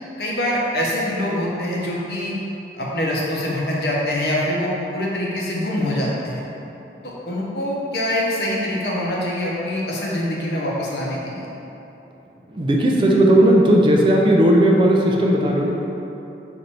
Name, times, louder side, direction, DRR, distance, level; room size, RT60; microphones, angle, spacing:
voice 1, 0.2-2.3 2.7-6.4 7.0-11.5, left 1 dB, 65° left, -4 dB, 0.8 m, -24 dB
voice 2, 12.5-15.7, right 1 dB, 30° right, -1 dB, 0.3 m, -16 dB
4.3 x 2.6 x 4.3 m, 3.0 s
head